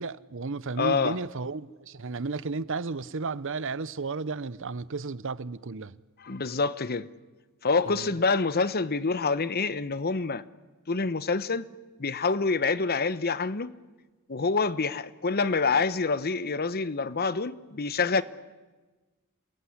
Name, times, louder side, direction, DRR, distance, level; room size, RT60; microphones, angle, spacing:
voice 1, 0.0-6.0 7.9-8.2, right 4 dB, 65° right, 0.8 m, -33 dB
voice 2, 0.8-1.2 6.2-7.1 7.6-10.4 10.9-11.6 12.0-13.7 14.3-18.2, left 4 dB, 45° left, 1.0 m, -26 dB
28.0 x 21.5 x 9.9 m
head